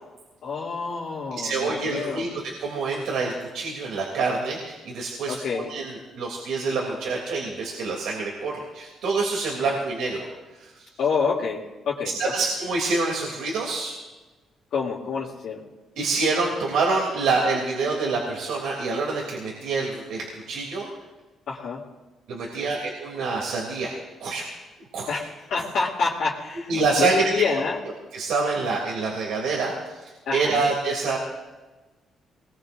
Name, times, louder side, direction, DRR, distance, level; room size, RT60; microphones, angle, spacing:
voice 1, 0.4-2.4 5.3-5.7 9.6-9.7 11.0-12.1 14.7-15.6 21.5-21.8 25.1-26.7 27.0-27.8 30.3-30.6, left 5 dB, 70° left, -8 dB, 2.7 m, -27 dB
voice 2, 1.3-10.3 10.5-10.9 12.2-13.9 16.0-20.9 22.3-23.9 24.2-24.5 24.9-25.2 25.6-25.7 26.7-27.3 28.1-31.2, right 3 dB, 85° right, -3 dB, 3.1 m, -26 dB
23.5 x 20.5 x 2.7 m, 1.2 s
cardioid pair, 90°, 0 cm